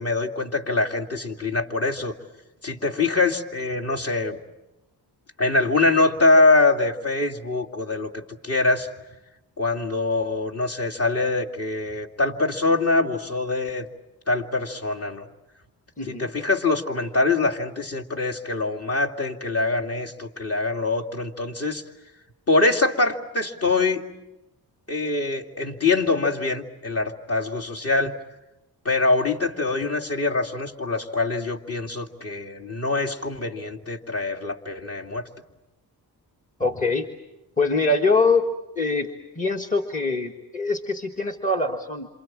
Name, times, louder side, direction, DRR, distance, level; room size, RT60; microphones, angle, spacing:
voice 1, 0.0-2.1 2.6-4.4 5.4-8.9 9.6-13.9 14.3-15.3 16.0-21.8 22.5-24.0 24.9-28.2 28.8-35.3, left 3 dB, 40° left, 0 dB, 2.4 m, -24 dB
voice 2, 16.0-16.3 36.6-37.1 37.6-38.4 38.7-39.1 39.3-42.1, left 3 dB, 20° left, 5 dB, 1.5 m, -23 dB
27.5 x 27.5 x 7.4 m, 0.96 s
wide cardioid pair, 115°, 38 cm